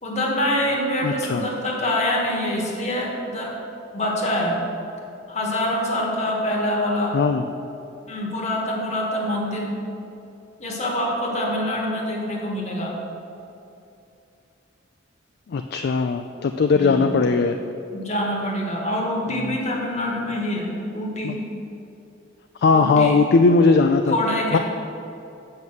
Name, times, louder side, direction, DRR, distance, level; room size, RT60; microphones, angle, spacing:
voice 1, 0.0-3.6 3.9-4.7 5.3-7.2 8.1-9.7 10.6-13.0 16.7-17.1 17.9-21.5 22.7-23.2 24.1-24.6, left 1 dB, 35° left, 0 dB, 1.5 m, -25 dB
voice 2, 1.0-1.4 7.1-7.4 15.5-17.6 19.3-19.6 21.2-21.3 22.6-24.1 24.5-24.6, left 4 dB, 55° left, 6 dB, 0.3 m, -19 dB
7.7 x 5.5 x 7.6 m, 2.7 s
head